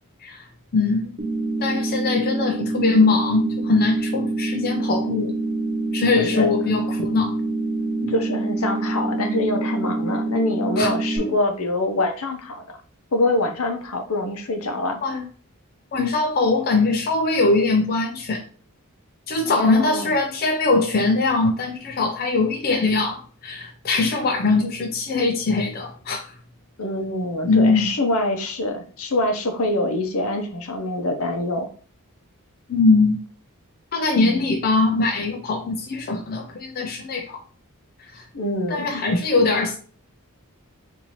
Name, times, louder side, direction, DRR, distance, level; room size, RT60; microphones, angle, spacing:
voice 1, 0.7-1.2 1.6-5.4 5.9-7.4 8.0-8.1 10.8-10.9 11.2-11.3 15.0-15.2 15.9-18.4 19.3-26.2 27.4-27.9 32.7-33.2 33.9-37.4 38.1-38.3 38.7-39.8, left 3 dB, 45° left, 0.4 m, -21 dB
sound 1, 1.2-11.2, right 2 dB, 40° right, 1.0 m, -26 dB
voice 2, 6.1-6.5 8.1-12.8 13.1-15.0 19.4-20.1 26.8-31.7 34.1-34.5 38.3-39.0, left 1 dB, 70° left, 0.7 m, -25 dB
4.1 x 2.6 x 3.0 m
head